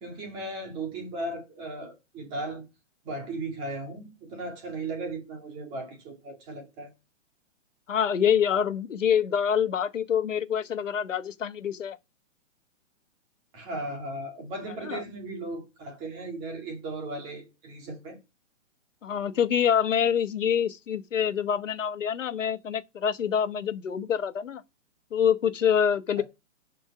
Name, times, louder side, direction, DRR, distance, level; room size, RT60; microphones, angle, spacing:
voice 1, 0.0-2.7 3.1-6.9 13.5-18.2 26.2-26.3, right 2 dB, 15° right, 2.1 m, -36 dB
voice 2, 7.9-12.0 14.8-15.0 19.0-24.6 25.1-26.2, left 8 dB, 75° left, 1.3 m, -26 dB
11.5 x 4.6 x 4.9 m
hypercardioid pair, 175°, 38 cm